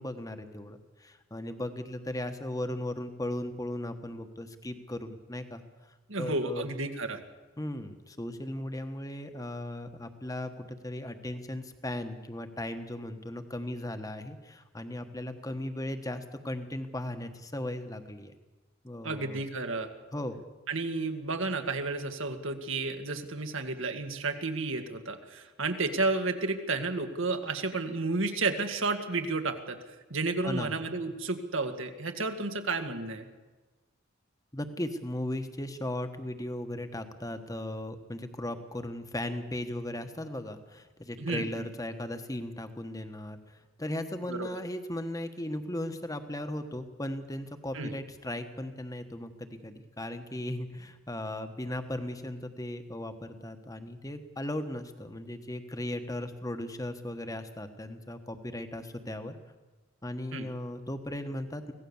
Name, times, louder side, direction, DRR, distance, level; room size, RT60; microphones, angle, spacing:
voice 1, 0.0-5.6 6.2-6.6 7.6-18.3 18.8-19.4 20.1-20.4 30.4-30.7 34.5-59.4 60.0-61.7, left 1 dB, 15° left, 8 dB, 1.4 m, -37 dB
voice 2, 6.1-7.2 19.0-19.9 20.7-29.8 30.1-33.3 41.2-41.6 44.3-44.5 47.7-47.9 60.3-60.5, right 3 dB, 70° right, 6 dB, 2.1 m, -32 dB
25.0 x 17.5 x 7.3 m, 1.2 s
head